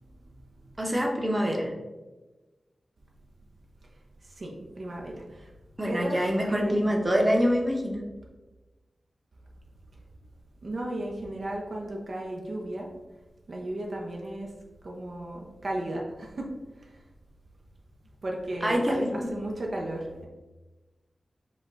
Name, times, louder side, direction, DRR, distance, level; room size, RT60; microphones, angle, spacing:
voice 1, 0.2-0.8 4.2-5.5 5.9-6.9 10.6-12.9 13.5-14.5 14.8-16.5 16.8-17.0 18.2-20.2, right 1 dB, 65° right, -1 dB, 0.7 m, -35 dB
voice 2, 0.8-1.7 5.8-8.0 18.6-19.3, equal, 25° right, 0 dB, 0.9 m, -25 dB
5.1 x 2.3 x 3.9 m, 1.2 s
cardioid pair, 50°, 0 cm